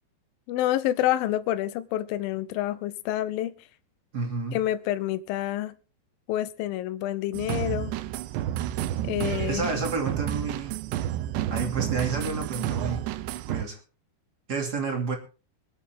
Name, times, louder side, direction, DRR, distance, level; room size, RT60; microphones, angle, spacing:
voice 1, 0.5-3.5 4.5-5.7 6.3-8.0 9.0-9.6, left 13 dB, 75° left, 2.3 m, -28 dB
voice 2, 4.1-4.6 9.5-10.8 11.5-13.0 13.5-13.8 14.5-15.2, right 4 dB, 30° right, 2.5 m, -30 dB
sound 1, 7.3-13.7, right 12 dB, 85° right, 3.1 m, -30 dB
25.0 x 8.5 x 3.6 m
omnidirectional pair, 4.9 m